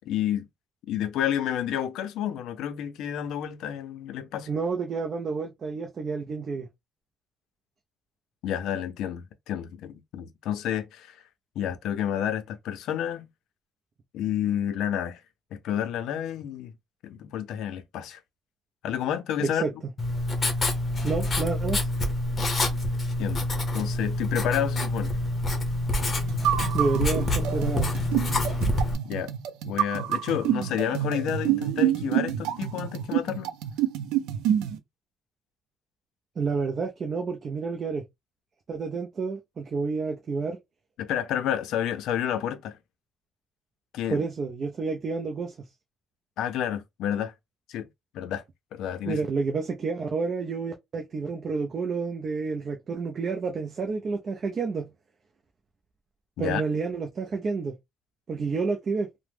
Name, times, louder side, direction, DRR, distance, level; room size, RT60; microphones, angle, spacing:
voice 1, 0.1-0.5 0.9-4.5 8.4-11.2 11.6-13.3 14.1-15.2 15.5-16.7 17.0-18.2 18.8-19.6 23.2-23.5 23.7-25.2 29.0-29.3 29.6-33.5 41.0-42.8 43.9-44.2 46.4-47.3 47.7-47.9 48.1-48.4 48.7-49.2 56.4-56.6, left 10 dB, 70° left, 0.5 m, -30 dB
voice 2, 4.5-6.7 19.4-19.7 21.0-21.9 26.7-27.9 36.4-38.0 38.7-40.6 44.1-45.6 49.1-54.9 56.4-57.7 58.3-59.1, right 4 dB, 35° right, 0.5 m, -29 dB
Writing, 20.0-28.9, left 1 dB, 25° left, 0.8 m, -27 dB
sound 1, 26.3-34.8, right 11 dB, 90° right, 0.4 m, -28 dB
2.9 x 2.0 x 3.3 m
cardioid pair, 135°, 0 cm